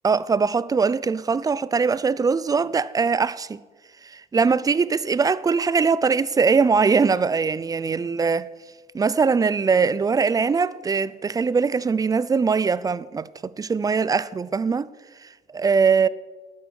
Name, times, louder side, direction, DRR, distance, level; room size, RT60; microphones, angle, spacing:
voice 1, 0.0-3.6 4.0-8.5 8.9-13.3 13.6-14.9 15.2-16.1, right 5 dB, 20° right, 0.5 m, -21 dB
12.5 x 9.2 x 6.4 m
cardioid pair, 110°, 17 cm